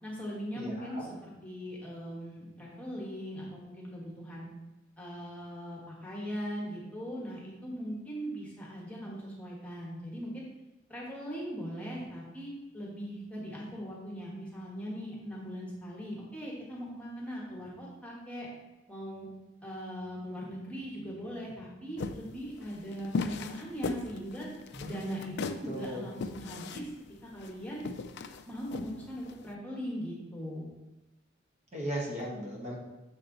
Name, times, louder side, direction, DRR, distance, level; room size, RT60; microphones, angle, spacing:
voice 1, 0.0-4.5 5.0-10.5 10.9-18.5 18.9-19.3 19.6-24.5 24.8-26.9 27.3-27.8 28.5-30.7, equal, 5° left, -4 dB, 1.3 m, -40 dB
voice 2, 0.5-1.1 24.7-25.3 25.6-26.1 31.7-32.8, right 1 dB, 35° right, -3 dB, 1.2 m, -37 dB
sound 1, 22.0-29.4, left 4 dB, 55° left, 0.4 m, -37 dB
6.8 x 4.4 x 3.9 m, 1.0 s
head